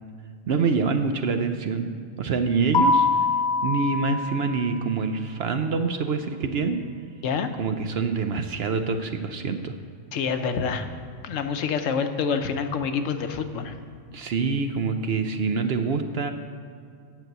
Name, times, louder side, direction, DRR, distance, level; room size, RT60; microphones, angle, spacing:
voice 1, 0.5-1.9 2.2-3.3 3.6-6.8 7.6-9.7 14.1-16.3, right 4 dB, 60° right, 7 dB, 0.7 m, -26 dB
Keyboard (musical), 2.7-5.3, left 3 dB, 25° left, 1.0 m, -24 dB
voice 2, 10.1-10.9 11.2-13.8, left 6 dB, 75° left, 8 dB, 1.1 m, -27 dB
9.3 x 6.0 x 7.9 m, 2.2 s
omnidirectional pair, 1.4 m